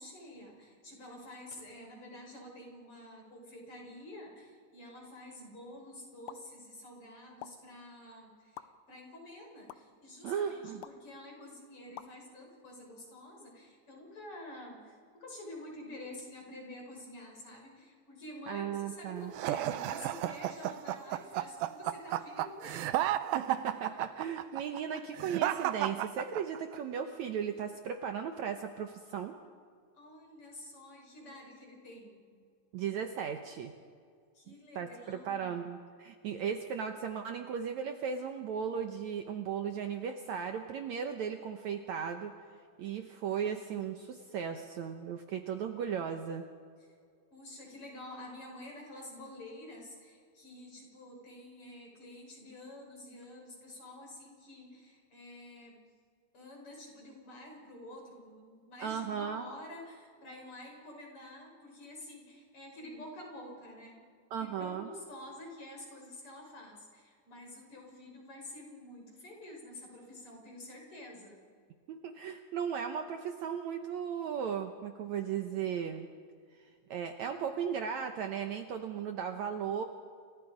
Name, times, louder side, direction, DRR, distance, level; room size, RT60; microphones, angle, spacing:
voice 1, 0.0-22.9 29.9-32.3 34.3-35.5 46.8-47.0 47.3-55.8 56.3-64.0 64.4-71.4, left 1 dB, 40° left, 0 dB, 6.7 m, -49 dB
sound 1, 6.3-6.4 7.4-7.5 8.5-8.6 9.7-9.8 10.8-11.0 12.0-12.1, left 13 dB, 75° left, 2.0 m, -45 dB
voice 2, 10.2-10.8 18.5-19.3 23.3-29.3 32.7-33.7 34.8-42.3 42.8-46.5 58.8-59.4 64.3-64.9 71.9-76.1 76.9-79.8, right 7 dB, 70° right, 6 dB, 2.0 m, -36 dB
sound 2, 19.3-26.8, right 13 dB, 85° right, 2.6 m, -33 dB
29.5 x 25.5 x 5.2 m, 2.2 s
omnidirectional pair, 4.0 m